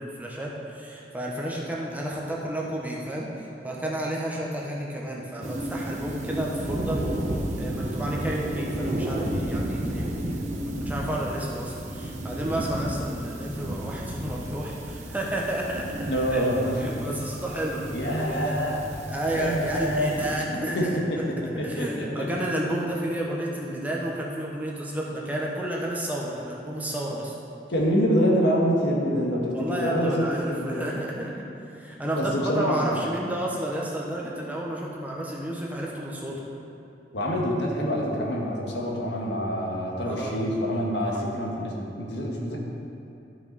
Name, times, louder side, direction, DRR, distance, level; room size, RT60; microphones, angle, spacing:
voice 1, 0.0-16.4 16.7-18.6 19.1-21.3 21.6-27.3 29.5-31.5 31.7-36.5 40.1-40.3 41.0-41.2, right 1 dB, 10° right, -3 dB, 1.0 m, -31 dB
sound 1, 5.4-20.4, right 1 dB, 40° right, 0.9 m, -32 dB
voice 2, 16.1-17.1 17.9-18.8 19.3-20.5 20.7-22.3 27.7-30.9 32.2-32.9 37.1-42.6, equal, 80° left, -2 dB, 1.6 m, -26 dB
12.5 x 6.0 x 4.1 m, 2.8 s
head